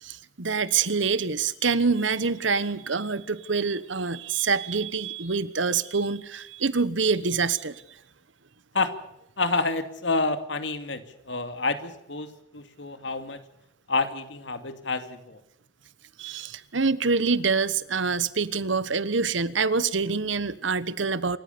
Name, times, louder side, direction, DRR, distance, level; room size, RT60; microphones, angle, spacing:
voice 1, 0.0-7.8 16.2-21.4, right 4 dB, 85° right, 1.2 m, -26 dB
voice 2, 9.4-13.4 13.9-15.4, left 3 dB, 75° left, 2.5 m, -28 dB
28.0 x 15.0 x 6.9 m
head